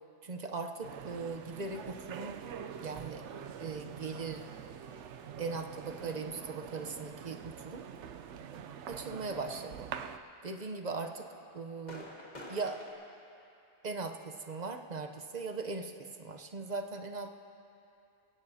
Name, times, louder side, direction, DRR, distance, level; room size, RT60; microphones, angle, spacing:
voice 1, 0.2-2.4 2.8-3.2 3.6-4.4 5.4-7.8 8.9-9.9 10.4-11.3 11.5-12.1 12.5-12.8 13.8-17.3, right 4 dB, 40° right, 5 dB, 0.8 m, -39 dB
sound 1, 0.8-10.2, right 8 dB, 90° right, 0.9 m, -45 dB
sound 2, 11.0-12.9, left 1 dB, 40° left, 2.0 m, -48 dB
23.5 x 16.5 x 2.8 m, 2.7 s
omnidirectional pair, 1.2 m